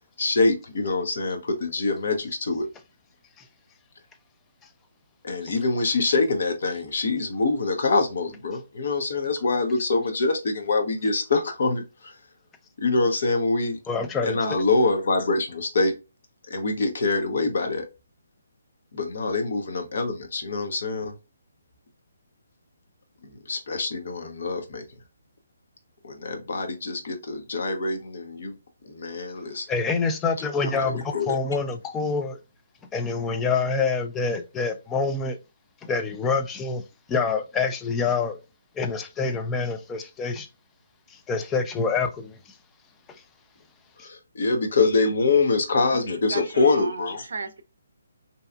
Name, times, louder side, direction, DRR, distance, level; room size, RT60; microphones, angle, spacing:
voice 1, 0.2-2.7 5.2-12.2 12.8-13.8 14.2-15.9 16.5-17.9 18.9-21.1 23.2-24.8 26.0-28.5 28.8-29.7 30.7-31.4 44.0-47.2, left 3 dB, 60° left, 0.7 m, -25 dB
voice 2, 13.9-14.4 29.7-32.4 32.9-35.4 35.8-36.8 37.1-38.4 38.8-40.5 41.1-42.4 43.1-43.2 44.0-44.1, left 4 dB, 15° left, 0.3 m, -26 dB
voice 3, 45.7-47.6, right 4 dB, 70° right, 0.5 m, -36 dB
2.7 x 2.4 x 2.3 m
hypercardioid pair, 145°, 0 cm